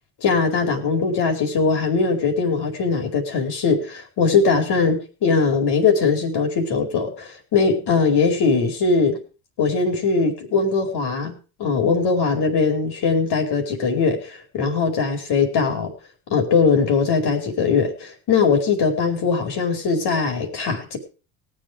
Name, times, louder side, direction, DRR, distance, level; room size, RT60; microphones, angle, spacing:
voice 1, 0.2-9.2 9.6-11.3 11.6-15.9 16.3-21.0, left 4 dB, 55° left, 3 dB, 4.6 m, -20 dB
18.5 x 8.0 x 5.0 m, 0.35 s
hypercardioid pair, 70°, 47 cm